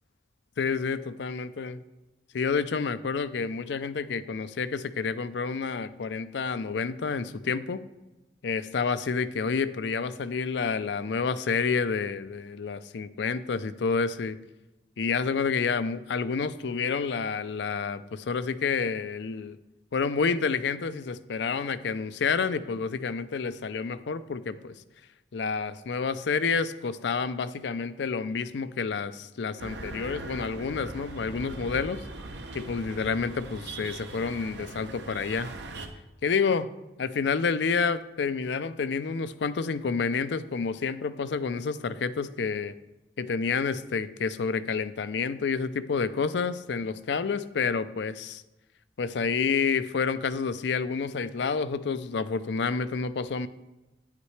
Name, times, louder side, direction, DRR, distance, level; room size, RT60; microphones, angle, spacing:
voice 1, 0.6-1.8 2.3-7.8 8.4-14.4 15.0-19.6 19.9-24.8 25.3-32.0 32.5-35.5 36.2-36.7 37.0-42.7 43.2-48.4 49.0-53.5, left 5 dB, 75° left, 13 dB, 0.4 m, -29 dB
sound 1, 29.6-35.9, right 2 dB, 75° right, 0.8 m, -40 dB
9.6 x 8.2 x 3.2 m, 1.0 s
head